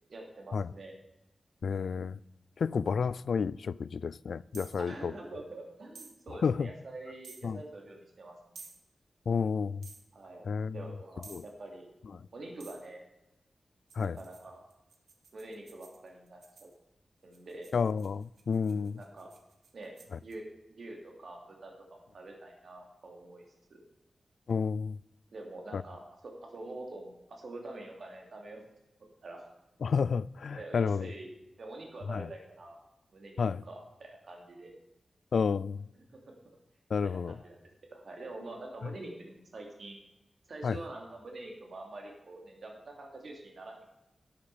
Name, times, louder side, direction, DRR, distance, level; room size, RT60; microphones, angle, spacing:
voice 1, 0.1-0.9 1.7-1.9 4.8-8.3 10.1-10.4 10.7-13.0 14.0-14.6 15.3-16.7 17.2-17.7 18.7-19.3 19.7-19.9 20.2-23.4 23.7-23.8 25.3-28.6 29.2-29.5 30.5-31.3 31.6-32.8 33.1-34.7 36.1-36.3 37.0-37.5 37.9-40.0 40.5-43.8, right 2 dB, 65° right, 2.8 m, -46 dB
voice 2, 1.6-2.2 2.6-5.1 6.4-6.7 7.4-7.6 9.3-9.8 10.5-10.8 11.3-11.4 14.0-14.2 17.7-19.0 24.5-25.0 25.7-25.8 29.8-31.1 32.1-32.3 33.4-33.6 35.3-35.9 36.9-37.4 40.6-40.8, left 5 dB, 80° left, 0.3 m, -30 dB
sound 1, 4.5-4.8 5.9-6.2 7.2-7.5 8.5-8.8 9.8-10.1 11.2-11.5 12.6-12.9 13.9-16.7 17.3-20.4, right 4 dB, 85° right, 1.5 m, -53 dB
11.5 x 11.5 x 4.9 m
wide cardioid pair, 100°, 0 cm